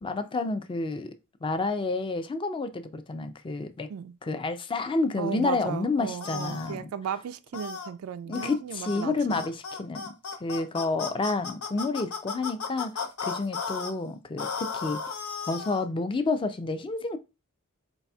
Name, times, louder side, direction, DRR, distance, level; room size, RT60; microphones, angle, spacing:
voice 1, 0.0-1.1 1.4-3.9 4.2-6.9 8.3-10.1 10.4-15.0 15.5-17.2, left 3 dB, 25° left, 0.4 m, -30 dB
voice 2, 5.2-9.4, right 8 dB, 75° right, 0.3 m, -35 dB
sound 1, 6.2-6.7 7.5-7.9 8.3-8.6 8.8-9.0 9.3-13.9 14.4-15.8, left 5 dB, 85° left, 0.8 m, -35 dB
4.1 x 4.0 x 2.3 m
head